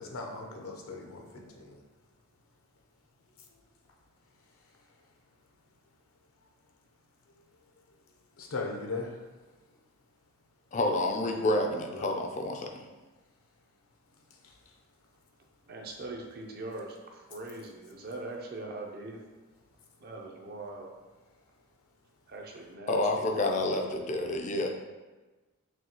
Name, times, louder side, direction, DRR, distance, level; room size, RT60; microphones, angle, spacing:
voice 1, 0.0-1.8 8.4-9.1 11.9-12.1 12.6-12.7, left 3 dB, 80° left, 1 dB, 0.7 m, -38 dB
voice 2, 10.7-12.8 22.9-24.7, left 2 dB, 35° left, 3 dB, 0.4 m, -29 dB
voice 3, 15.7-19.2 20.0-21.0 22.3-23.3, right 2 dB, 45° right, 1 dB, 0.5 m, -41 dB
6.1 x 2.3 x 2.9 m, 1.2 s
head